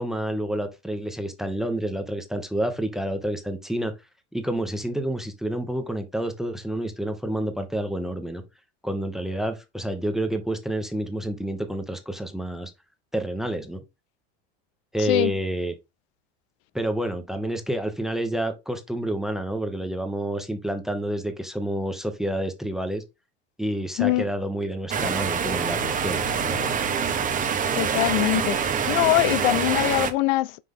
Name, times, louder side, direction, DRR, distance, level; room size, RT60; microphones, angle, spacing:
voice 1, 0.0-3.9 4.3-8.4 8.8-12.7 13.1-13.8 14.9-15.7 16.7-23.0 23.6-26.8, right 1 dB, ahead, 1.0 m, -29 dB
voice 2, 15.0-15.3 24.0-24.3 27.7-30.6, left 18 dB, 60° left, 0.5 m, -23 dB
sound 1, 24.9-30.1, right 7 dB, 25° right, 1.1 m, -25 dB
5.8 x 4.9 x 3.7 m
supercardioid pair, 130°, 32 cm